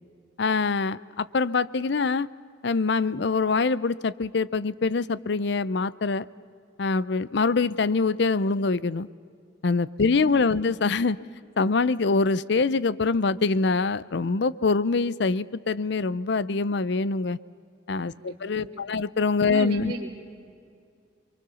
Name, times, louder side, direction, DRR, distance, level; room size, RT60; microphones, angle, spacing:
voice 1, 0.4-2.3 2.6-6.3 6.8-9.1 9.6-11.2 11.6-17.4 17.9-19.9, left 4 dB, 65° left, 19 dB, 0.6 m, -24 dB
voice 2, 10.0-10.6 18.1-18.8 19.4-20.2, right 2 dB, 45° right, -7 dB, 2.8 m, -38 dB
28.0 x 23.5 x 7.0 m, 2.4 s
head